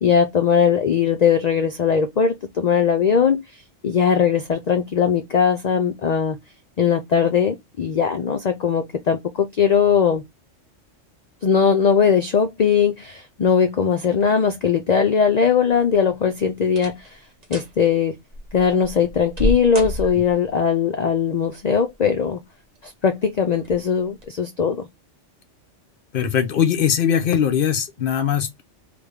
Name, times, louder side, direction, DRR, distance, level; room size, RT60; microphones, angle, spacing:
voice 1, 0.0-3.4 3.8-6.4 6.8-10.2 11.4-17.2 17.5-18.2 18.5-22.4 22.8-24.9, left 7 dB, 80° left, 0.3 m, -19 dB
sound 1, 15.7-16.2 16.7-17.1 17.4-17.8 18.3-20.5 21.7-22.3 22.8-22.9 23.6-23.8 24.2-24.3, equal, 35° right, 0.9 m, -29 dB
voice 2, 26.1-28.6, left 8 dB, 55° left, 0.7 m, -20 dB
3.4 x 2.1 x 3.4 m
omnidirectional pair, 1.3 m